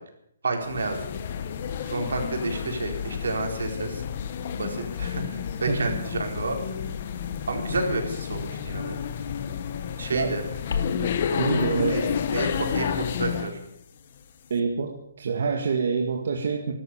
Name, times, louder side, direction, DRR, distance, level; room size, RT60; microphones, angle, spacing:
voice 1, 0.4-1.0 1.9-4.0 4.6-6.6 7.5-9.0 10.0-10.4 11.3-12.0 12.3-13.5, right 3 dB, 85° right, 3 dB, 4.3 m, -30 dB
sound 1, 0.6-13.6, left 8 dB, 35° left, 1.2 m, -30 dB
sound 2, 10.7-15.5, left 6 dB, 60° left, 2.2 m, -39 dB
voice 2, 11.0-12.0 14.5-16.7, right 5 dB, 55° right, 2 dB, 1.9 m, -27 dB
13.0 x 12.5 x 8.7 m, 0.76 s
hypercardioid pair, 175°, 0 cm